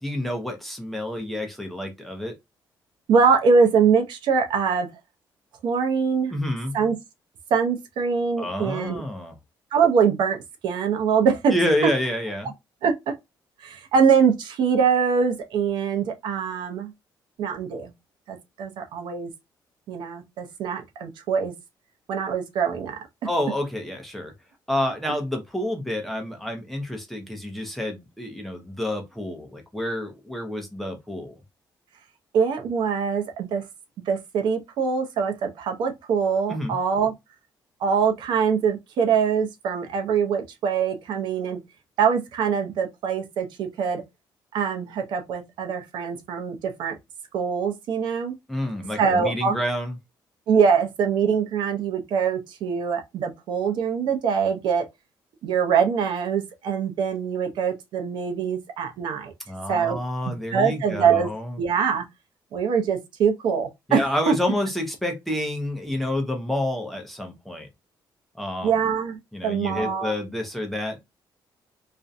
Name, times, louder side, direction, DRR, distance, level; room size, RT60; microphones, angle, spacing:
voice 1, 0.0-2.3 6.3-6.7 8.4-9.3 11.5-12.5 23.2-24.3 24.7-31.3 36.5-36.8 48.5-50.0 59.5-61.6 63.9-67.7 68.3-68.7 69.3-71.0, left 1 dB, ahead, 0.5 m, -28 dB
voice 2, 3.1-4.9 5.6-6.3 6.7-6.9 7.5-9.0 9.7-11.5 12.8-13.1 13.6-16.9 17.4-17.9 18.3-19.3 19.9-21.5 22.1-22.9 32.3-33.6 34.1-37.1 37.8-41.6 42.0-44.0 44.5-47.0 47.3-48.4 49.0-49.6 50.5-54.8 55.4-59.3 59.7-60.0 60.3-61.3 61.6-62.0 62.5-64.3 68.6-70.1, right 6 dB, 75° right, 0.6 m, -23 dB
2.4 x 2.1 x 2.6 m
cardioid pair, 175°, 8 cm